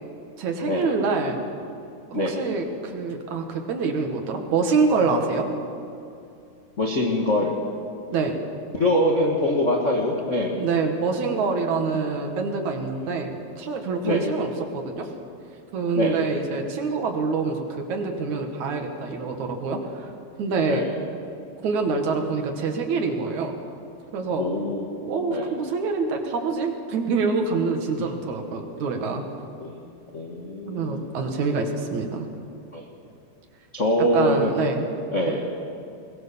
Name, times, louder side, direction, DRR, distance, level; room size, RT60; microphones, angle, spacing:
voice 1, 0.4-1.4 2.1-5.5 8.1-8.4 10.6-15.1 15.7-20.1 20.4-20.8 21.6-23.5 24.1-24.5 25.0-29.2 30.6-32.3 34.1-34.9 35.3-35.4, right 4 dB, 55° right, 4 dB, 2.8 m, -26 dB
voice 2, 6.8-7.6 8.7-10.7 11.9-12.0 14.0-14.3 15.9-16.2 20.7-20.9 24.4-25.0 25.3-25.5 29.6-29.9 30.1-31.1 32.7-32.8 33.7-34.5 35.1-35.5, left 1 dB, 45° left, -2 dB, 0.9 m, -24 dB
22.5 x 19.5 x 7.0 m, 2.6 s
omnidirectional pair, 4.6 m